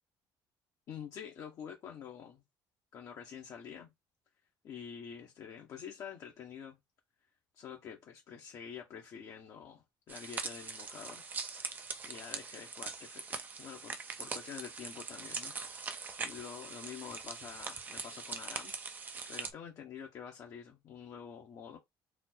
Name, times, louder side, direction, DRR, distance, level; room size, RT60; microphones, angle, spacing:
voice 1, 0.9-2.4 2.9-3.9 4.6-6.8 7.5-11.2 11.5-11.7 12.1-15.8 16.2-18.7 19.3-21.8, left 7 dB, 40° left, 1.0 m, -47 dB
sound 1, 10.1-19.5, right 5 dB, 20° right, 0.5 m, -42 dB
4.2 x 2.0 x 4.0 m
cardioid pair, 175°, 8 cm